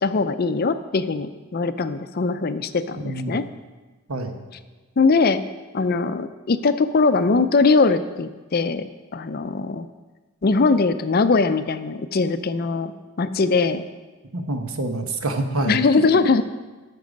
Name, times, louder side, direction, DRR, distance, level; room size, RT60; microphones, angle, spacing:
voice 1, 0.0-3.4 5.0-5.4 5.7-8.8 9.1-9.9 10.4-13.8 15.7-16.4, left 4 dB, 45° left, 12 dB, 0.4 m, -21 dB
voice 2, 3.0-3.4 4.1-4.4 14.3-16.0, right 2 dB, 75° right, 6 dB, 1.1 m, -27 dB
12.5 x 6.8 x 5.2 m, 1.3 s
head